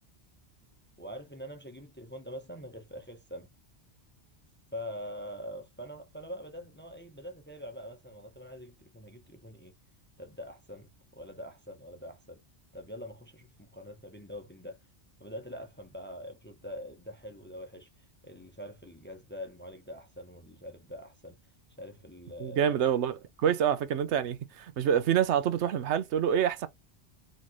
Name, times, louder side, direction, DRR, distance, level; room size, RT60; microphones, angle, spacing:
voice 1, 1.0-3.5 4.7-9.7 10.2-12.4 12.7-14.8 15.2-17.9 18.2-21.4 21.8-22.6, equal, 15° left, 0.5 m, -44 dB
voice 2, 22.4-26.7, right 9 dB, 90° right, 0.9 m, -27 dB
4.3 x 3.1 x 3.0 m
omnidirectional pair, 1.1 m